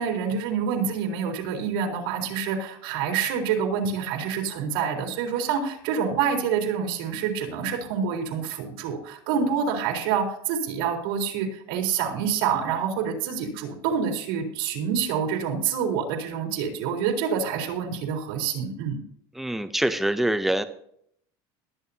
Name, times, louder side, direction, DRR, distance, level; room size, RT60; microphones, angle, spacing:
voice 1, 0.0-19.0, right 7 dB, 80° right, 1 dB, 3.8 m, -27 dB
voice 2, 19.3-20.6, right 1 dB, ahead, 10 dB, 0.6 m, -24 dB
21.5 x 9.2 x 2.8 m, 0.67 s
cardioid pair, 170°, 12 cm